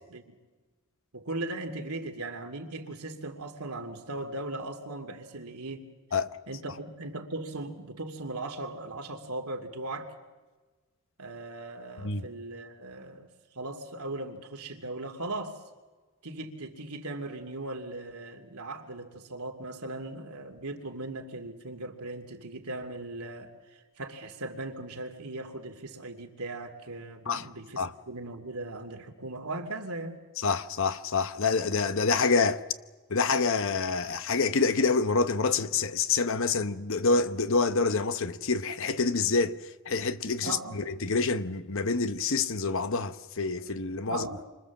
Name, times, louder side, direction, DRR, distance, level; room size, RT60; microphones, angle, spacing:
voice 1, 1.1-5.8 6.5-10.1 11.2-13.3 13.5-15.6 16.2-23.5 24.0-30.2 40.4-40.8 44.1-44.4, right 2 dB, 80° right, 2.7 m, -38 dB
voice 2, 30.4-32.6 33.1-44.3, left 4 dB, 60° left, 0.9 m, -27 dB
28.0 x 25.5 x 7.3 m
head